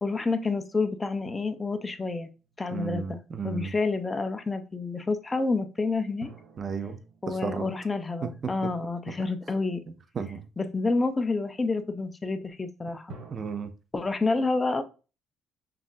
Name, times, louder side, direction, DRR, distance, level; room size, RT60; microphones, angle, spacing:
voice 1, 0.0-2.3 2.6-3.2 3.4-6.3 7.2-9.8 10.6-13.1 13.9-14.8, left 3 dB, 15° left, 0.5 m, -28 dB
sound 1, 1.2-3.2 6.2-9.5 13.1-13.5, right 2 dB, 75° right, 0.7 m, -51 dB
voice 2, 2.7-3.7 6.6-7.0 7.3-7.7 8.2-8.7 9.1-9.2 10.1-10.5 13.3-13.7, right 5 dB, 35° right, 0.5 m, -33 dB
5.4 x 2.5 x 2.5 m
cardioid pair, 140°, 0 cm